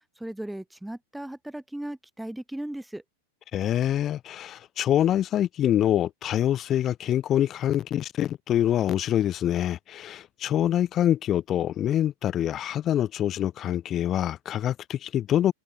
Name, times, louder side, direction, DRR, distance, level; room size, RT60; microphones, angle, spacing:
voice 1, 0.2-3.0, right 1 dB, 5° right, 1.1 m, -36 dB
voice 2, 3.5-15.5, left 11 dB, 30° left, 0.3 m, -25 dB
figure-of-eight pair, 90°, 0 cm